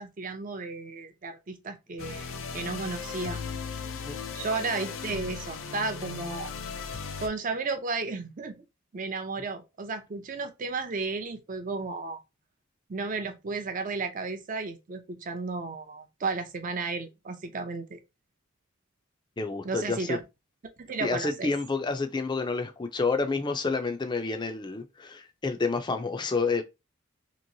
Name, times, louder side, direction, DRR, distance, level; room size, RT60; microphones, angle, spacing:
voice 1, 0.0-3.4 4.3-6.5 7.2-8.6 8.9-12.2 12.9-18.0 19.6-20.2 20.8-21.5, right 3 dB, 40° right, 0.5 m, -33 dB
sound 1, 2.0-7.3, left 5 dB, 75° left, 0.5 m, -37 dB
voice 2, 19.4-20.2 21.0-26.6, left 4 dB, 20° left, 0.4 m, -29 dB
3.0 x 2.9 x 2.7 m
head